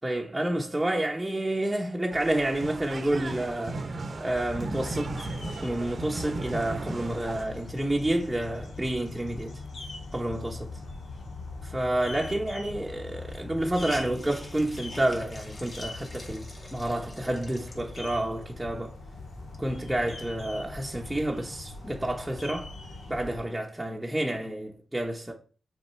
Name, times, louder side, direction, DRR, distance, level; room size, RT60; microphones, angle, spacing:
voice 1, 0.0-3.8 4.2-5.3 5.6-9.6 10.1-10.8 11.6-18.9 19.6-22.7 23.1-25.3, right 1 dB, 10° right, 1.0 m, -29 dB
sound 1, 2.1-7.5, right 2 dB, 55° right, 0.9 m, -36 dB
sound 2, 4.3-23.4, left 3 dB, 85° left, 1.8 m, -41 dB
Hiss, 12.4-12.5 12.8-12.9 13.3-18.3 18.9-19.0 19.3-20.7, left 1 dB, 40° left, 2.1 m, -47 dB
6.4 x 3.8 x 4.5 m
cardioid pair, 60°, 0 cm